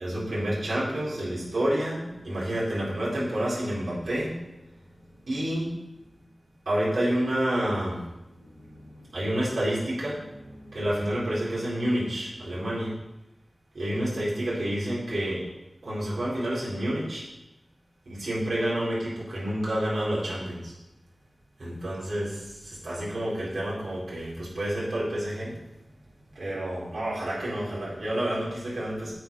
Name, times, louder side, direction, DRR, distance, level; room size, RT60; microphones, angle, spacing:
voice 1, 0.0-4.3 5.2-5.7 6.7-8.0 8.3-13.0 13.7-15.5 15.8-17.2 18.1-20.7 21.6-25.6 26.3-29.1, right 1 dB, 75° right, -8 dB, 4.3 m, -29 dB
9.2 x 8.1 x 5.6 m, 0.93 s
wide cardioid pair, 80°, 0 cm